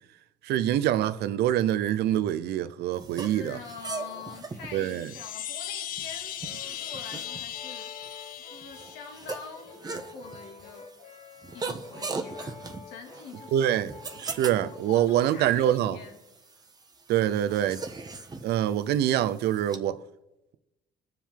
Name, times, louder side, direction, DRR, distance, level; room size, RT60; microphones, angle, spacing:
voice 1, 0.5-3.6 4.7-5.1 13.5-13.9 14.2-16.0 17.1-17.8 18.4-20.0, right 11 dB, 75° right, 0.6 m, -25 dB
sound 1, 3.0-19.8, right 4 dB, 25° right, 1.1 m, -41 dB
voice 2, 3.2-6.3 6.8-7.9 8.4-10.9 11.5-12.6 12.9-13.7 14.3-14.4 14.7-16.2 17.1-17.6, left 6 dB, 85° left, 2.2 m, -44 dB
Chime, 4.8-9.5, left 11 dB, 55° left, 0.6 m, -38 dB
Brass instrument, 6.4-15.0, left 4 dB, 40° left, 2.2 m, -49 dB
21.5 x 7.4 x 3.7 m
cardioid pair, 110°, 17 cm